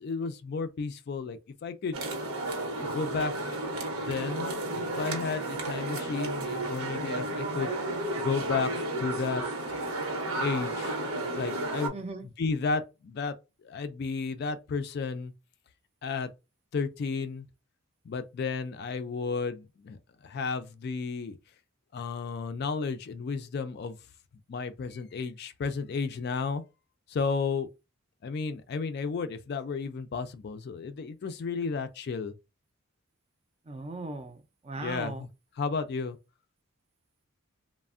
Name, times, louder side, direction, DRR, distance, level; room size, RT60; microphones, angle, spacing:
voice 1, 0.0-2.0 2.6-8.7 9.0-9.4 9.7-9.8 10.4-11.0 11.4-12.0 12.2-13.3 13.6-15.3 16.0-16.3 16.7-17.5 18.1-21.4 21.9-24.0 24.5-26.6 27.1-27.7 28.2-32.3 34.8-35.3 35.6-36.2, left 4 dB, 50° left, 0.3 m, -33 dB
sound 1, 1.9-11.9, right 2 dB, 85° right, 0.9 m, -32 dB
voice 2, 11.9-12.2 33.7-34.4 34.7-35.2, right 3 dB, 30° right, 0.4 m, -37 dB
3.2 x 2.0 x 2.4 m
head